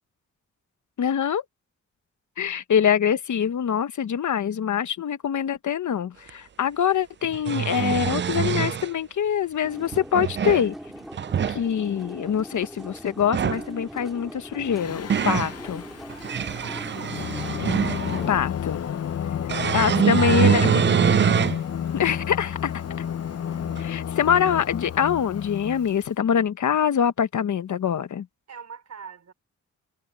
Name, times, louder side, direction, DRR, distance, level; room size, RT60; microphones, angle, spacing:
voice 1, 1.0-1.4 2.4-10.7 11.5-15.8 18.3-18.8 19.7-20.8 21.9-22.8 23.8-28.3, left 8 dB, 75° left, 1.1 m, -24 dB
sound 1, 6.3-6.4 7.2-8.9 9.9-10.7 11.1-11.6 13.2-13.7 14.6-15.5 16.1-18.3 19.5-21.6 22.1-22.2 23.8-23.9, right 8 dB, 40° right, 0.4 m, -24 dB
sound 2, 9.6-18.3, equal, ahead, 4.5 m, -41 dB
Singing, 14.7-26.0, left 9 dB, 55° left, 0.7 m, -31 dB
voice 2, 16.6-17.2 20.1-20.6 28.5-29.3, right 6 dB, 60° right, 5.3 m, -42 dB
cardioid pair, 85°, 30 cm